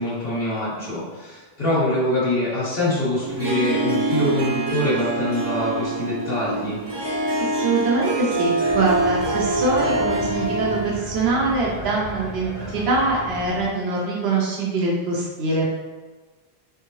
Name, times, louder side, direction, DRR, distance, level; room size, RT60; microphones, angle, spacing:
voice 1, 0.0-6.8, left 1 dB, 60° left, -11 dB, 1.8 m, -24 dB
Harp, 3.2-11.1, right 2 dB, 35° right, 0.5 m, -25 dB
voice 2, 7.4-15.7, right 3 dB, 80° right, -3 dB, 0.9 m, -23 dB
sound 1, 8.6-13.7, equal, 50° right, 1.1 m, -35 dB
3.6 x 3.4 x 3.1 m, 1.3 s
omnidirectional pair, 1.1 m